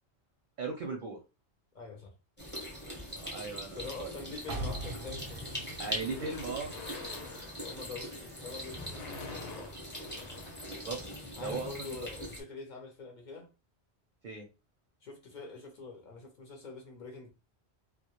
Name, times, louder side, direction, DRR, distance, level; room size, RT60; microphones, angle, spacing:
voice 1, 0.6-1.2 3.2-4.1 5.8-6.7 10.6-11.0 11.4-12.1 14.2-14.5, right 4 dB, 60° right, 0.6 m, -38 dB
voice 2, 1.7-2.1 3.7-5.5 7.6-9.8 11.4-13.5 15.0-17.3, left 4 dB, 55° left, 0.6 m, -45 dB
sound 1, 2.4-12.4, equal, 10° left, 0.7 m, -42 dB
sound 2, 2.8-3.8 4.6-4.8 5.1-11.6, left 4 dB, 85° left, 0.9 m, -49 dB
sound 3, 4.5-8.2 8.6-8.7, right 2 dB, 90° right, 0.9 m, -42 dB
2.1 x 2.1 x 2.8 m
omnidirectional pair, 1.1 m